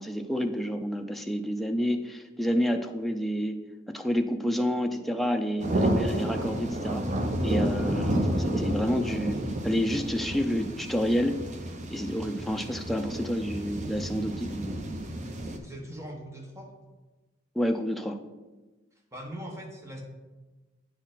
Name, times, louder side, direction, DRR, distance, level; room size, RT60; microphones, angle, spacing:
voice 1, 0.0-3.6 3.9-7.0 7.4-11.4 11.9-14.8 17.6-18.2, equal, ahead, 4 dB, 0.4 m, -29 dB
sound 1, 5.6-15.6, right 1 dB, 40° right, 0.6 m, -30 dB
voice 2, 15.6-16.7 19.1-20.0, equal, 15° right, 1 dB, 1.0 m, -41 dB
8.9 x 4.2 x 3.9 m, 1.2 s
head